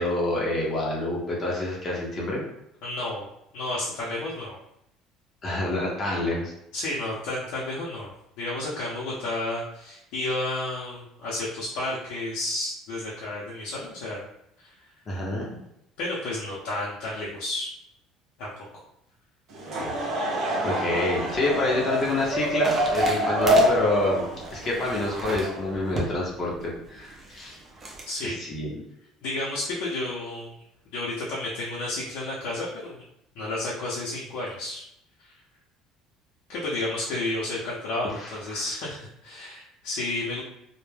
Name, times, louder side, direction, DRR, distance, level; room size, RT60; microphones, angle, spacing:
voice 1, 0.0-2.4 5.4-6.5 15.1-15.6 20.6-27.6 28.2-28.8 38.2-38.6, left 2 dB, 35° left, -3 dB, 0.6 m, -27 dB
voice 2, 2.8-3.3 3.5-4.5 6.7-8.1 8.4-14.2 16.0-17.7 18.4-18.5 28.1-28.4 29.2-30.6 30.9-32.9 33.3-34.8 35.2-35.3 36.5-40.4, left 2 dB, 80° left, -6 dB, 0.6 m, -31 dB
Laughter / Crowd, 19.5-25.9, right 1 dB, 65° right, 0.8 m, -26 dB
sound 1, 21.1-28.1, right 2 dB, 25° right, 0.5 m, -37 dB
2.1 x 2.1 x 3.2 m, 0.80 s
cardioid pair, 120°, 0 cm